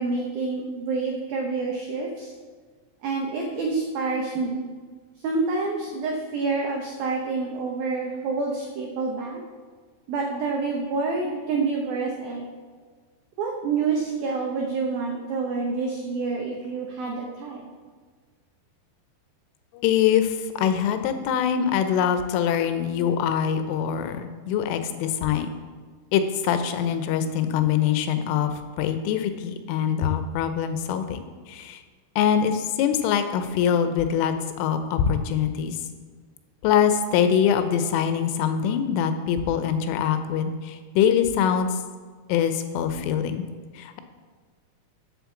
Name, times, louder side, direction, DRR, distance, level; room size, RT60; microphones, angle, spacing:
voice 1, 0.0-2.3 3.0-4.7 5.2-9.4 10.1-12.4 13.4-17.6, right 4 dB, 90° right, 0 dB, 2.0 m, -27 dB
voice 2, 19.8-25.5 26.1-28.5 28.8-31.8 32.2-35.8 36.6-41.8 42.3-43.4 43.7-44.0, left 8 dB, 90° left, 9 dB, 3.3 m, -23 dB
7.8 x 7.5 x 7.2 m, 1.5 s
omnidirectional pair, 5.6 m